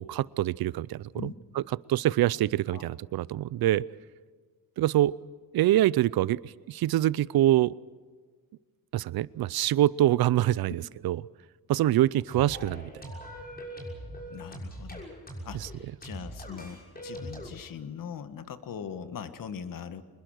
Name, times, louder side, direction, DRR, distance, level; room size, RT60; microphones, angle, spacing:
voice 1, 0.0-1.3 1.9-3.8 4.8-5.2 5.5-7.7 8.9-11.2 11.7-13.1, right 13 dB, 75° right, 21 dB, 0.6 m, -25 dB
sound 1, 12.3-17.5, equal, 25° left, 6.2 m, -41 dB
voice 2, 14.3-15.1 15.4-20.0, left 7 dB, 60° left, 11 dB, 1.6 m, -41 dB
25.0 x 21.0 x 6.5 m, 1.5 s
cardioid pair, 125°, 37 cm